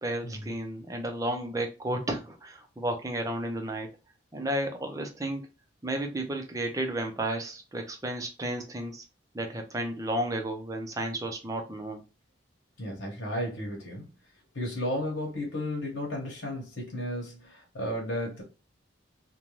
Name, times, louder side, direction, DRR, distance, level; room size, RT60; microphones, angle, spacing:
voice 1, 0.0-3.9 4.3-5.5 5.8-9.0 9.3-12.0, right 1 dB, 20° right, 0.5 m, -32 dB
voice 2, 12.8-14.1 14.5-18.4, left 1 dB, 80° left, 1.0 m, -33 dB
2.6 x 2.2 x 3.0 m
head